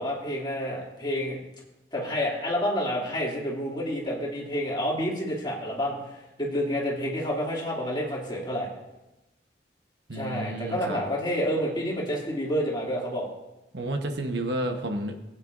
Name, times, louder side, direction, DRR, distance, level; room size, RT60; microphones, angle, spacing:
voice 1, 0.0-1.4 1.9-8.7 10.1-13.2, equal, 25° left, -4 dB, 2.7 m, -29 dB
voice 2, 10.1-11.0 13.7-15.2, right 1 dB, 75° right, 4 dB, 1.2 m, -31 dB
19.5 x 9.0 x 2.6 m, 0.97 s
head